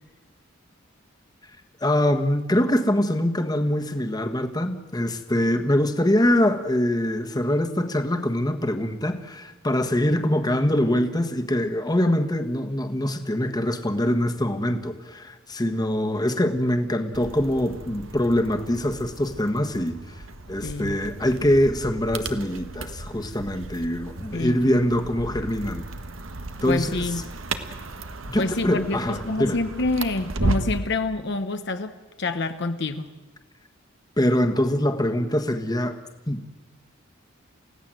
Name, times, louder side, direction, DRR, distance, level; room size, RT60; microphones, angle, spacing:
voice 1, 1.8-20.2 20.5-25.8 26.6-27.0 28.3-29.6 34.2-36.0 36.3-36.4, left 1 dB, 20° left, 5 dB, 1.6 m, -24 dB
sound 1, 17.1-30.9, right 2 dB, 90° right, 1.5 m, -34 dB
voice 2, 20.6-21.0 24.3-24.6 26.7-27.2 28.4-33.1, left 2 dB, 60° left, 8 dB, 1.1 m, -27 dB
29.5 x 16.5 x 7.8 m, 1.1 s
head